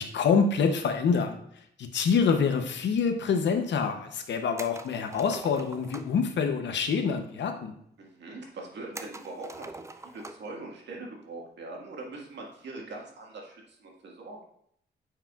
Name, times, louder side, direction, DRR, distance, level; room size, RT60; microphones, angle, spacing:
voice 1, 0.0-7.7, left 5 dB, 80° left, 6 dB, 0.7 m, -26 dB
sound 1, 4.6-6.2 8.9-10.6 10.9-11.0 12.6-12.9, right 2 dB, 15° right, 0.4 m, -44 dB
voice 2, 8.0-14.4, right 2 dB, 75° right, -1 dB, 1.7 m, -42 dB
8.9 x 4.8 x 2.3 m, 0.69 s
wide cardioid pair, 120°, 18 cm